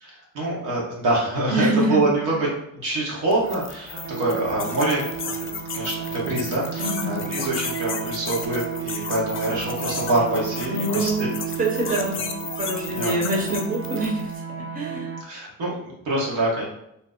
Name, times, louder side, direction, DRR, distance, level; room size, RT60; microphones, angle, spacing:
voice 1, 0.0-2.5 2.7-11.3 12.9-13.2 15.2-16.6, right 2 dB, 90° right, -4 dB, 1.2 m, -25 dB
voice 2, 1.5-2.0 6.8-7.3 10.7-14.3 14.7-15.2, right 2 dB, 30° right, -2 dB, 0.9 m, -25 dB
sound 1, 3.3-14.2, left 6 dB, 45° left, 0.5 m, -34 dB
sound 2, 3.9-15.2, right 8 dB, 45° right, 0.4 m, -33 dB
2.8 x 2.1 x 3.6 m, 0.79 s
cardioid pair, 90°, 30 cm